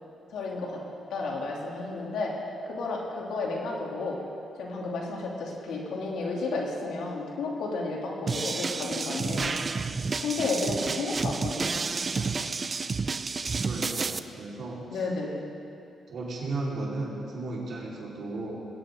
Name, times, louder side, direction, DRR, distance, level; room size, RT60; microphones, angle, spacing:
voice 1, 0.3-0.8 1.1-2.3 2.7-4.2 4.6-9.6 10.2-11.8 14.9-15.4, left 3 dB, 85° left, -2 dB, 3.3 m, -32 dB
sound 1, 8.3-14.2, right 4 dB, 35° right, 0.6 m, -30 dB
voice 2, 13.2-15.0 16.1-18.7, right 2 dB, 60° right, -5 dB, 4.6 m, -35 dB
20.0 x 18.0 x 3.9 m, 2.8 s
cardioid pair, 85°, 0 cm